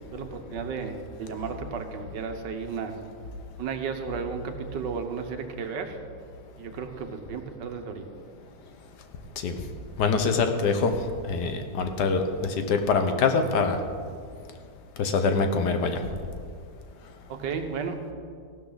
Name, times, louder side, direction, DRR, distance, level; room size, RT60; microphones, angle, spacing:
voice 1, 0.1-2.9 3.6-6.0 6.6-8.0 17.3-18.0, right 5 dB, 80° right, 6 dB, 1.7 m, -33 dB
voice 2, 10.0-11.0 11.3-13.8 15.0-16.0, left 4 dB, 70° left, 7 dB, 1.5 m, -24 dB
15.0 x 12.0 x 4.0 m, 2.2 s
omnidirectional pair, 1.9 m